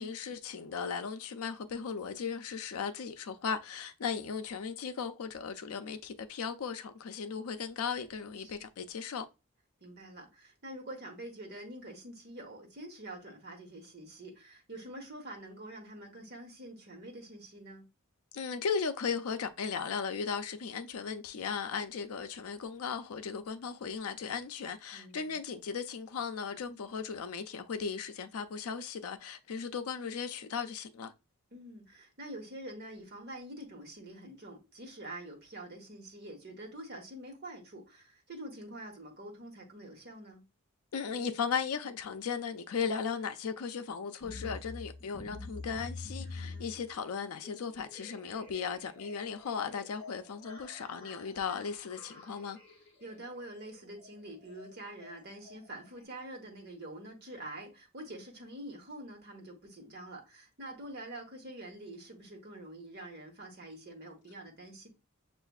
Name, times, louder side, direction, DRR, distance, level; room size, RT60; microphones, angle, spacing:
voice 1, 0.0-9.3 18.3-31.1 40.9-52.6, left 6 dB, 90° left, 0.5 m, -36 dB
voice 2, 9.8-17.8 24.9-25.4 31.5-40.4 46.2-46.7 53.0-64.9, right 1 dB, 50° right, 1.2 m, -46 dB
sound 1, 44.2-56.0, left 3 dB, 25° left, 1.5 m, -48 dB
6.5 x 2.5 x 2.3 m
head